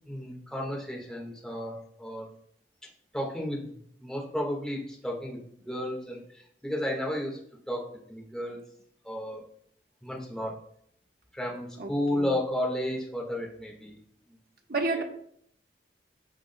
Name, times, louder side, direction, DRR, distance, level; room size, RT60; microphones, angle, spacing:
voice 1, 0.1-2.3 3.1-5.4 5.6-7.4 7.7-8.6 9.0-9.4 10.0-10.6 11.3-13.9, left 1 dB, 5° left, -2 dB, 1.6 m, -33 dB
voice 2, 11.8-12.3 14.7-15.0, right 3 dB, 60° right, 3 dB, 1.2 m, -30 dB
14.5 x 5.0 x 2.2 m, 0.66 s
head